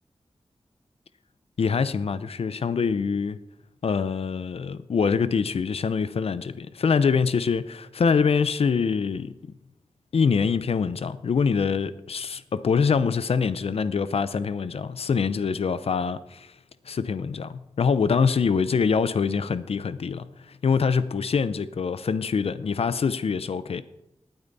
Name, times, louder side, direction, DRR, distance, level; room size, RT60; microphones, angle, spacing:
voice 1, 1.6-3.4 3.8-9.5 10.1-16.5 16.9-23.8, left 5 dB, 80° left, 0.6 m, -24 dB
19.0 x 8.9 x 4.1 m
wide cardioid pair, 95°, 10 cm